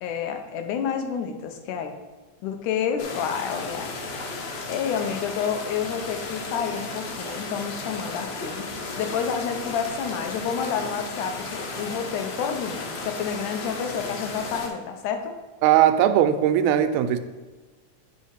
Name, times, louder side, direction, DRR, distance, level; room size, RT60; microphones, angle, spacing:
voice 1, 0.0-2.0 2.4-4.0 4.7-8.7 9.0-15.4, left 7 dB, 90° left, 2.4 m, -29 dB
sound 1, 3.0-14.7, left 3 dB, 70° left, 2.2 m, -34 dB
voice 2, 15.6-17.2, right 11 dB, 85° right, 2.0 m, -19 dB
8.6 x 4.2 x 5.6 m
omnidirectional pair, 3.5 m